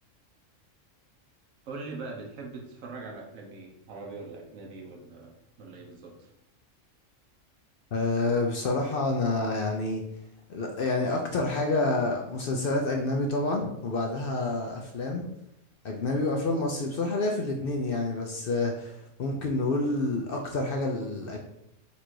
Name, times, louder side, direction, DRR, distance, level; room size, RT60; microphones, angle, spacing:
voice 1, 1.7-5.3 5.6-6.3, right 3 dB, 80° right, 0 dB, 1.2 m, -41 dB
voice 2, 7.9-10.0 10.5-15.3 15.8-21.4, left 2 dB, 60° left, 1 dB, 0.6 m, -28 dB
4.1 x 2.6 x 4.5 m, 0.80 s
omnidirectional pair, 1.4 m